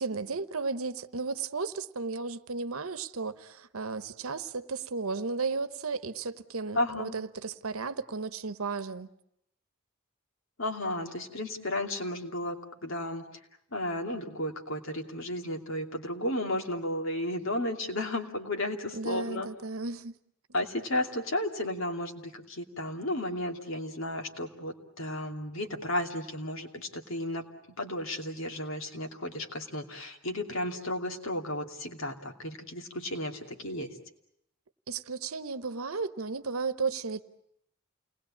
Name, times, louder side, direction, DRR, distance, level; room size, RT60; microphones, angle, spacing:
voice 1, 0.0-9.1 18.9-20.1 34.9-37.2, right 4 dB, 90° right, 1.0 m, -34 dB
voice 2, 6.7-7.2 10.6-13.3 13.7-19.5 20.5-27.4 27.8-33.9, left 1 dB, 70° left, 2.8 m, -33 dB
29.0 x 20.0 x 8.6 m
head